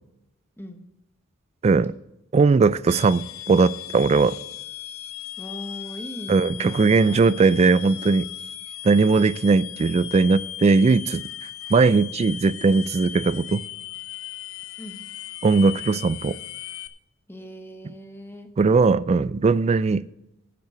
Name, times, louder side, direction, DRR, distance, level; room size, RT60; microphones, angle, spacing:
voice 1, 2.3-4.3 6.3-8.3 8.8-11.3 11.7-13.7 15.4-16.4 18.6-20.1, right 4 dB, 30° right, 0.3 m, -19 dB
sound 1, 2.9-16.9, left 12 dB, 85° left, 0.7 m, -37 dB
voice 2, 5.4-7.4 14.8-15.0 17.3-18.5, equal, 10° left, 1.2 m, -39 dB
10.5 x 5.7 x 8.0 m
head